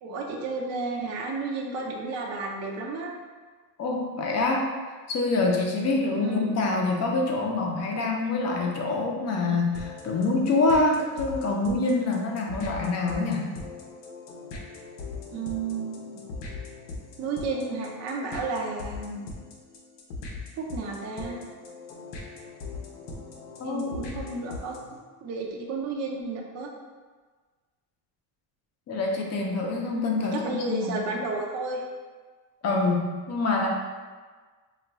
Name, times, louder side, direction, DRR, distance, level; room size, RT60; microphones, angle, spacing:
voice 1, 0.0-3.1 6.2-6.5 15.3-16.2 17.2-19.2 20.6-21.4 23.6-24.7 25.2-26.7 30.3-31.8, right 3 dB, 40° right, 0 dB, 0.5 m, -32 dB
voice 2, 3.8-4.7 5.1-13.5 23.6-24.0 28.9-31.1 32.6-33.7, left 3 dB, 40° left, 0 dB, 0.6 m, -26 dB
sound 1, 9.7-25.0, left 3 dB, 80° left, 0.7 m, -40 dB
2.4 x 2.2 x 3.9 m, 1.4 s
cardioid pair, 110°, 43 cm